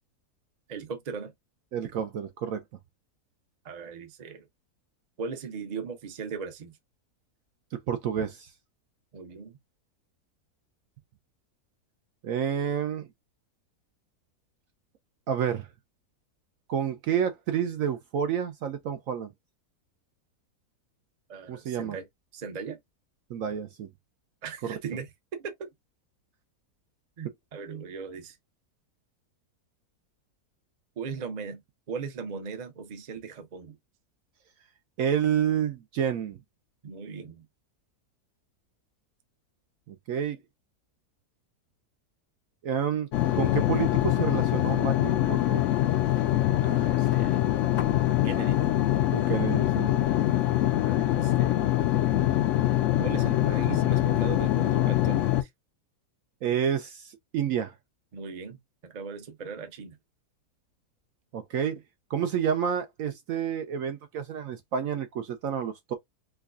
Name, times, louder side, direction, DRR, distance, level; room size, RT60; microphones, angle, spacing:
voice 1, 0.7-1.3 3.6-4.4 5.2-6.8 9.1-9.6 21.3-22.1 22.3-22.8 24.4-25.7 27.2-28.4 31.0-31.6 31.9-33.8 36.8-37.5 46.6-47.5 48.2-48.7 50.8-51.6 53.0-55.5 58.1-58.6 58.8-60.0, right 5 dB, 40° right, 0.6 m, -38 dB
voice 2, 1.7-2.6 7.9-8.5 12.2-13.1 15.3-15.7 16.7-19.3 21.5-22.0 23.3-23.9 24.7-24.8 35.0-36.4 39.9-40.4 42.6-43.1 43.3-45.7 49.1-49.9 56.4-57.7 61.3-61.8 62.1-65.9, right 8 dB, 70° right, 0.9 m, -29 dB
sound 1, 43.1-55.4, left 14 dB, 70° left, 0.7 m, -24 dB
4.7 x 2.3 x 2.3 m
omnidirectional pair, 1.7 m